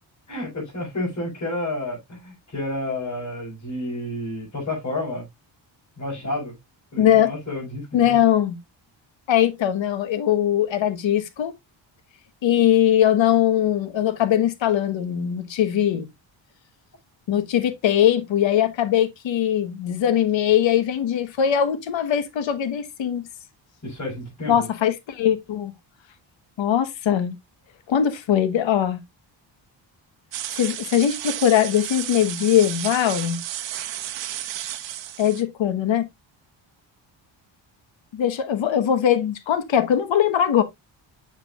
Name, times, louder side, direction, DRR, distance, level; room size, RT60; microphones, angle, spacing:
voice 1, 0.3-5.3 6.0-6.6 6.9-8.2 23.8-24.7, left 1 dB, 35° left, 5.5 m, -30 dB
voice 2, 7.0-7.3 7.9-8.6 9.3-11.5 12.4-16.1 17.3-23.3 24.5-25.7 26.6-27.3 27.9-29.0 30.6-33.4 35.2-36.1 38.1-40.6, left 10 dB, 75° left, 1.4 m, -21 dB
sound 1, 30.3-35.4, right 12 dB, 70° right, 1.0 m, -32 dB
7.2 x 7.1 x 2.4 m
cardioid pair, 110°, 46 cm